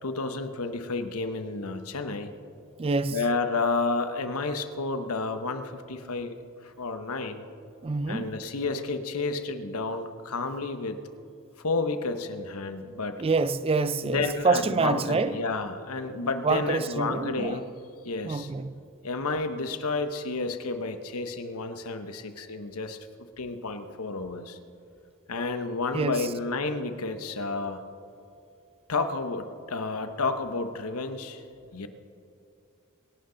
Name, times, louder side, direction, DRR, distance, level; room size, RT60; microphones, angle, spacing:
voice 1, 0.0-2.3 3.1-6.3 6.6-7.4 8.1-11.0 11.6-13.2 14.0-17.6 18.0-18.5 19.0-23.0 23.4-24.6 25.3-27.8 28.9-31.4 31.7-31.9, left 3 dB, 75° left, 1.0 m, -31 dB
voice 2, 2.8-3.2 7.8-8.3 13.2-15.4 16.4-17.6 18.3-18.8 25.9-26.3, right 4 dB, 25° right, 0.4 m, -27 dB
24.0 x 11.5 x 3.9 m
head